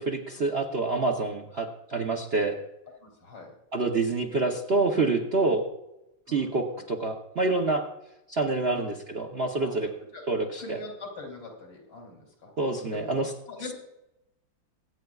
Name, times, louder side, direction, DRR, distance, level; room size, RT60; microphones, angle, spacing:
voice 1, 0.0-2.6 3.7-5.7 6.3-7.8 8.3-9.9 10.3-10.8 12.6-13.3, right 3 dB, 50° right, 2 dB, 0.8 m, -27 dB
voice 2, 3.0-3.5 6.3-6.8 8.4-9.0 9.6-9.8 10.1-13.1 13.5-13.7, left 3 dB, 85° left, 0 dB, 3.7 m, -43 dB
24.0 x 9.2 x 2.4 m, 0.90 s
omnidirectional pair, 2.1 m